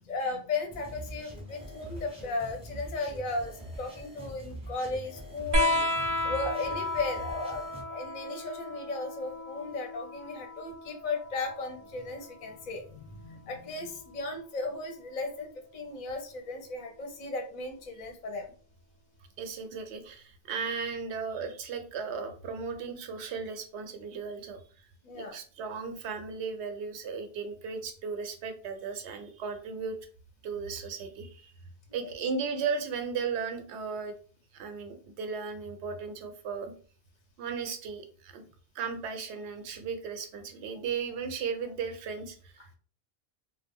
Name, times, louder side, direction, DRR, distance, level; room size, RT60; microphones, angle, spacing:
voice 1, 0.0-3.5 3.8-6.0 6.2-7.6 7.9-18.4 25.0-25.4, left 3 dB, 50° left, 3 dB, 0.6 m, -35 dB
sound 1, 0.7-7.8, equal, 5° right, 0.6 m, -44 dB
sound 2, 5.5-12.6 14.0-14.8 16.1-16.2, left 1 dB, 55° right, 0.6 m, -33 dB
voice 2, 19.4-24.9 25.1-30.0 30.4-31.5 31.9-34.1 34.5-36.7 37.4-38.4 38.7-42.6, right 5 dB, 90° right, 7 dB, 0.8 m, -36 dB
2.2 x 2.0 x 3.4 m, 0.41 s
omnidirectional pair, 1.1 m